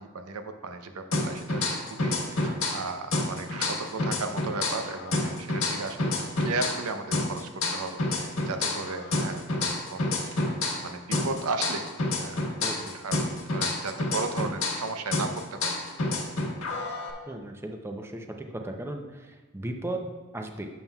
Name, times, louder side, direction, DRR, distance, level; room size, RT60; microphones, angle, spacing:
voice 1, 0.0-6.1 6.4-10.0 10.3-10.4 10.8-11.9 12.2-12.4 12.9-13.2 13.5-15.8, right 3 dB, 85° right, 7 dB, 0.7 m, -35 dB
sound 1, 1.1-2.8 3.1-6.8 7.1-10.9 11.1-14.8 15.1-17.1, left 2 dB, 70° left, 1.4 m, -29 dB
voice 2, 12.6-12.9 17.3-20.7, right 1 dB, 10° right, 4 dB, 0.5 m, -36 dB
11.0 x 7.2 x 2.3 m, 1.2 s
head